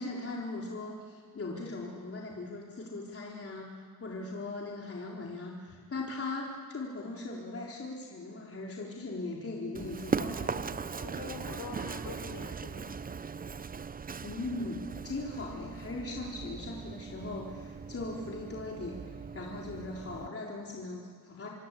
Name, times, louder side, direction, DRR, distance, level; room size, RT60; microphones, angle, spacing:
voice 1, 0.0-10.8 14.2-21.5, left 2 dB, 40° left, -2 dB, 4.1 m, -39 dB
Run, 9.7-20.3, right 5 dB, 25° right, 0.6 m, -39 dB
voice 2, 10.9-13.0, left 5 dB, 70° left, 4 dB, 5.9 m, -44 dB
27.0 x 22.5 x 8.6 m, 2.1 s
cardioid pair, 85°, 36 cm